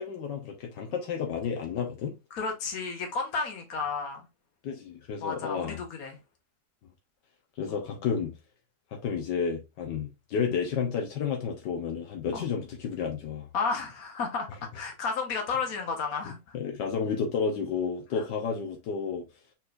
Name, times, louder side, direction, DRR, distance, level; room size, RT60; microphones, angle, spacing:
voice 1, 0.0-2.2 4.6-5.8 7.6-8.3 8.9-13.5 16.5-19.2, left 6 dB, 80° left, 1.5 m, -31 dB
voice 2, 2.3-4.3 5.2-6.2 12.3-12.4 13.5-16.5 18.2-18.3, left 5 dB, 55° left, 1.6 m, -32 dB
4.3 x 4.1 x 2.5 m
omnidirectional pair, 1.9 m